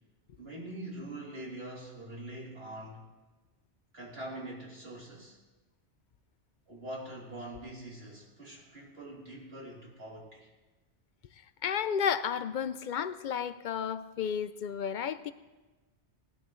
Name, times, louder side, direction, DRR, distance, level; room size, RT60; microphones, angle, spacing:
voice 1, 0.4-3.0 3.9-5.4 6.7-10.5, right 1 dB, 65° right, 3.5 m, -43 dB
voice 2, 11.6-15.3, left 7 dB, 55° left, 0.6 m, -32 dB
19.0 x 11.5 x 3.1 m
omnidirectional pair, 1.1 m